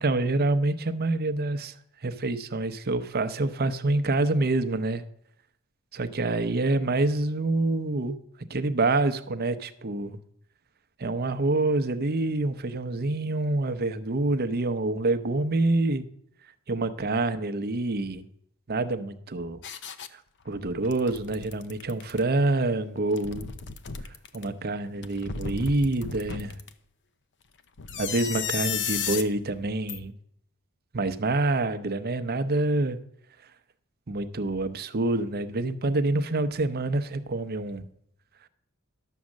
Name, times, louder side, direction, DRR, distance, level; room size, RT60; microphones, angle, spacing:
voice 1, 0.0-1.7 2.0-5.0 5.9-8.2 8.5-10.2 11.0-16.0 16.7-18.3 18.7-19.6 20.1-20.2 20.5-23.5 24.3-26.6 28.0-30.1 30.9-33.0 34.1-37.8, right 2 dB, 45° right, 10 dB, 0.7 m, -26 dB
sound 1, 19.6-20.1 20.5-22.2 23.0-24.5 25.0-26.7 27.8-29.3 29.9-30.0, left 7 dB, 55° left, 0.7 m, -34 dB
11.5 x 6.4 x 7.2 m, 0.70 s
head